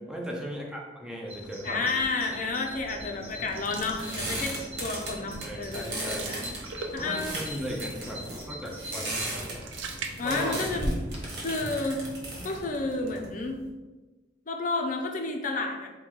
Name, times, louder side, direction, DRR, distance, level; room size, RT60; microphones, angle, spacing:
voice 1, 0.1-1.9 5.4-6.2 6.9-9.1 10.2-10.8, equal, 5° right, -2 dB, 0.5 m, -36 dB
Bird vocalization bird call bird song, 1.3-11.4, equal, 30° right, 0.8 m, -44 dB
voice 2, 1.6-4.5 4.8-7.4 10.2-10.9 11.4-12.1 12.4-13.6 14.5-15.9, left 3 dB, 45° left, 3 dB, 0.5 m, -31 dB
sound 1, 3.3-13.7, right 1 dB, 60° right, 1.2 m, -36 dB
sound 2, 3.4-4.8 5.2-5.4 5.7-7.4 9.2-11.0 11.3-11.4 12.2-13.1, right 4 dB, 80° right, 0.5 m, -42 dB
3.9 x 2.2 x 4.5 m, 1.2 s
head